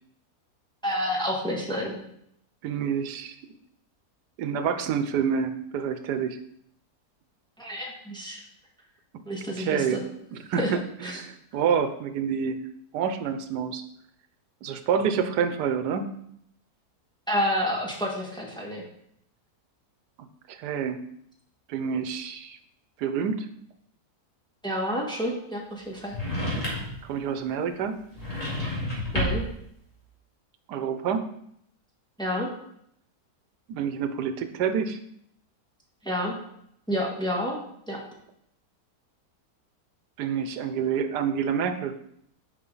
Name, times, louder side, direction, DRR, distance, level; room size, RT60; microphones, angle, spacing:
voice 1, 0.8-2.0 7.6-8.4 9.3-10.0 10.6-10.7 11.0-11.2 17.3-18.8 24.6-26.2 29.1-29.4 32.2-32.5 36.0-36.3 36.9-37.6 37.9-38.0, equal, 5° left, -2 dB, 1.5 m, -29 dB
voice 2, 2.6-3.4 4.4-6.4 9.6-10.0 10.3-12.6 12.9-13.8 14.6-16.1 20.2-21.0 21.7-22.6 23.0-23.5 27.0-28.0 30.7-31.2 33.7-35.0 40.2-42.0, right 7 dB, 90° right, 9 dB, 1.3 m, -28 dB
sound 1, 26.1-27.0 28.1-29.6, equal, 25° left, 2.3 m, -29 dB
9.7 x 5.1 x 3.9 m, 0.72 s
omnidirectional pair, 1.7 m